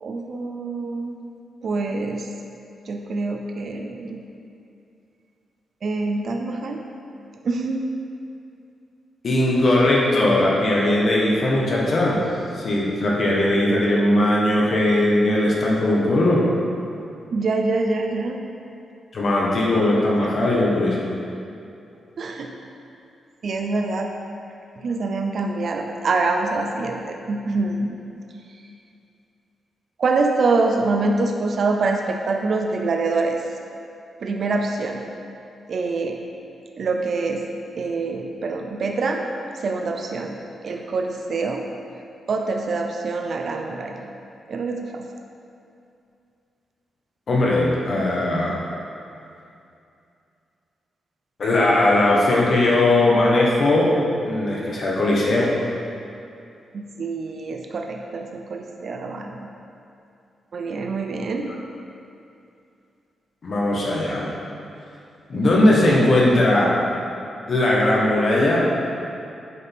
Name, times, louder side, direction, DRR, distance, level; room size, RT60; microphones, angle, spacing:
voice 1, 0.0-1.2 1.6-2.3 2.9-4.2 5.8-6.8 7.4-7.9 17.3-18.4 20.1-20.3 22.2-22.5 23.4-24.1 24.8-28.0 30.0-33.4 34.2-35.1 35.7-36.2 36.8-37.4 37.8-39.2 39.5-40.4 40.6-41.6 42.3-44.0 44.5-45.1 56.7-59.5 60.5-61.5, right 3 dB, 45° right, 3 dB, 0.5 m, -25 dB
voice 2, 9.2-12.2 12.5-16.4 19.1-21.0 47.3-48.6 51.4-53.9 54.2-55.5 63.4-64.3 65.3-66.7 67.5-68.6, left 1 dB, 45° left, -4 dB, 1.3 m, -19 dB
8.4 x 6.7 x 3.6 m, 2.6 s
wide cardioid pair, 160°, 0 cm